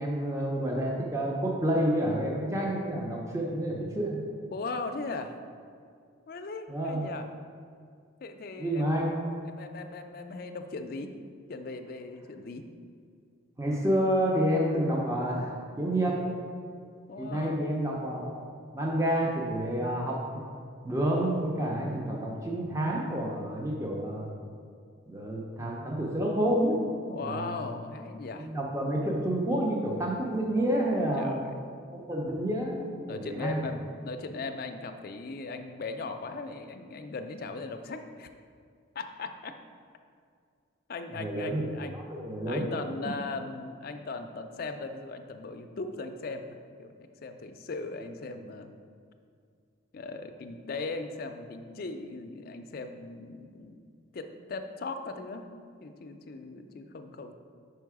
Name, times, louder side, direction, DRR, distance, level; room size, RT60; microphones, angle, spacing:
voice 1, 0.0-4.3 6.7-7.1 8.6-9.1 13.6-16.4 17.2-18.4 18.7-20.3 20.8-24.3 25.1-27.6 28.4-31.5 31.9-33.6 41.2-41.6 42.1-42.7, right 1 dB, 15° right, -2 dB, 0.6 m, -29 dB
voice 2, 4.5-5.3 6.3-7.3 8.2-8.9 9.5-11.1 11.5-12.7 17.1-17.7 27.1-28.5 31.2-31.5 33.1-38.3 39.0-39.5 40.9-42.0 42.5-46.9 47.2-48.7 49.9-53.8 54.1-55.5 55.8-57.3, left 3 dB, 45° left, 7 dB, 0.4 m, -38 dB
5.6 x 4.6 x 4.7 m, 2.2 s
head